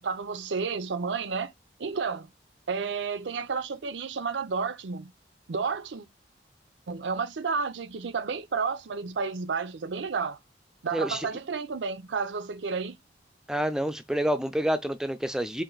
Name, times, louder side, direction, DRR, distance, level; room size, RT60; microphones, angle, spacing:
voice 1, 0.0-1.5 1.8-2.3 2.7-5.1 5.5-6.1 6.9-10.4 10.8-13.0, right 5 dB, 90° right, 0.5 m, -31 dB
voice 2, 10.9-11.3 13.5-15.6, equal, 5° right, 0.4 m, -28 dB
4.4 x 2.6 x 3.9 m
head